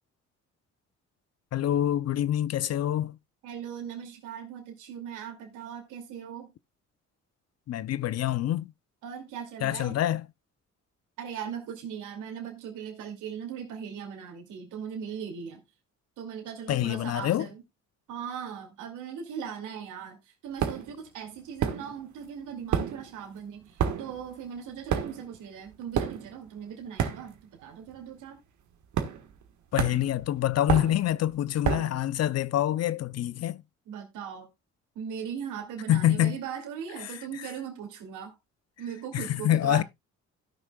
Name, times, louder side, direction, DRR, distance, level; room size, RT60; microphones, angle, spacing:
voice 1, 1.5-3.2 7.7-8.7 9.6-10.2 16.7-17.5 29.7-33.6 35.9-36.4 37.0-37.5 39.1-39.8, left 12 dB, 55° left, 0.6 m, -26 dB
voice 2, 3.4-6.5 9.0-9.9 11.2-15.6 16.2-17.6 18.1-28.4 33.9-34.5 34.9-38.3 38.8-39.8, right 8 dB, 90° right, 2.5 m, -39 dB
sound 1, 20.6-21.0 21.6-22.2 22.5-27.6 27.9-28.2 28.9-29.5 29.8-32.0, right 8 dB, 70° right, 1.5 m, -30 dB
17.5 x 6.2 x 2.3 m
cardioid pair, 90°, 30 cm